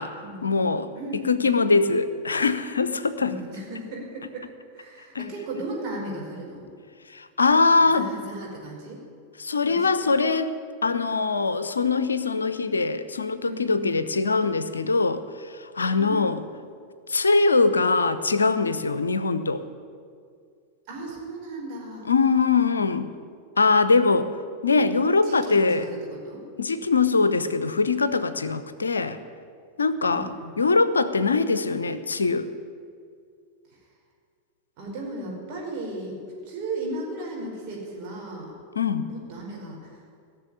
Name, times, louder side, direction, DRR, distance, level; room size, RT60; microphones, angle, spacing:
voice 1, 0.4-3.3 5.1-5.3 7.1-8.1 9.4-10.5 10.8-15.2 15.8-16.4 17.1-19.6 22.1-23.1 23.6-24.3 24.6-25.9 26.6-29.2 29.8-32.5 38.8-39.1, left 4 dB, 75° left, 13 dB, 0.7 m, -22 dB
voice 2, 1.0-1.4 3.2-4.5 4.7-6.7 7.8-9.0 9.7-10.1 13.4-14.0 16.0-16.2 20.9-22.1 25.2-26.4 30.1-30.6 34.8-36.2 36.4-38.5 39.1-40.0, right 2 dB, 40° right, -2 dB, 5.1 m, -36 dB
17.5 x 6.9 x 10.0 m, 2.2 s
figure-of-eight pair, 90°, 0 cm